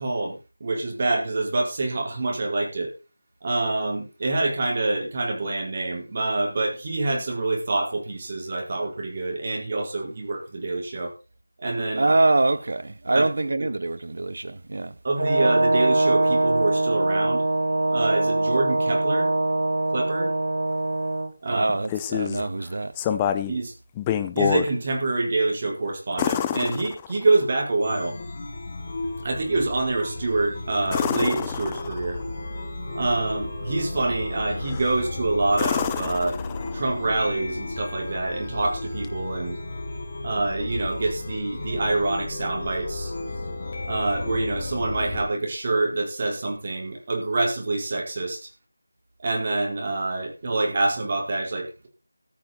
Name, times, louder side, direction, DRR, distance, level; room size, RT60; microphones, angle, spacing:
voice 1, 0.0-2.9 3.4-11.1 11.6-12.1 13.1-13.7 15.0-17.4 17.9-19.3 19.9-20.3 21.4-21.7 23.5-23.7 24.3-28.2 29.2-32.2 32.9-36.4 36.7-39.6 40.2-43.1 43.8-48.5 49.2-51.9, right 2 dB, 30° right, 4.5 m, -26 dB
voice 2, 12.0-14.9 21.5-22.9, right 2 dB, 55° right, 1.6 m, -24 dB
Brass instrument, 15.2-21.3, right 2 dB, 75° right, 4.8 m, -23 dB
sound 1, 21.6-22.5 23.0-23.6 24.0-24.7 26.2-27.4 30.9-32.2 34.6-35.0 35.5-36.9 39.0-39.1, left 10 dB, 10° left, 0.7 m, -27 dB
Chime, 27.8-45.2, left 2 dB, 30° left, 5.0 m, -34 dB
14.0 x 11.5 x 4.3 m
figure-of-eight pair, 175°, 0 cm